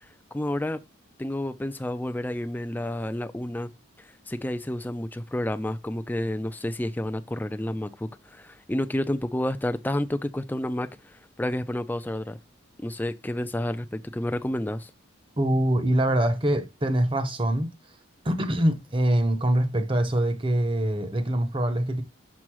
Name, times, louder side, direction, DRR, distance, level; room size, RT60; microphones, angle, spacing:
voice 1, 0.3-0.8 1.2-3.7 4.0-12.4 12.8-14.9, left 1 dB, 10° left, 0.4 m, -30 dB
voice 2, 15.4-17.7 18.2-22.0, right 1 dB, 25° right, 0.8 m, -24 dB
6.3 x 4.0 x 6.1 m
head